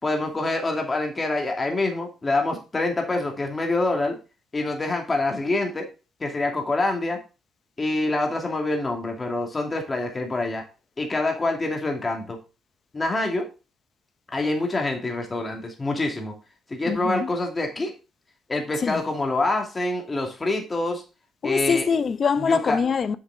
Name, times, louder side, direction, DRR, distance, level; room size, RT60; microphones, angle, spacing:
voice 1, 0.0-4.2 4.5-5.9 6.2-7.2 7.8-10.6 11.0-12.4 12.9-13.5 14.3-16.3 16.7-17.9 18.5-21.0 21.4-21.9 22.4-22.8, left 2 dB, 25° left, 2.5 m, -26 dB
voice 2, 16.8-17.3 18.8-19.0 21.4-23.2, left 6 dB, 45° left, 0.8 m, -23 dB
7.2 x 7.2 x 3.7 m
cardioid pair, 90°, 0 cm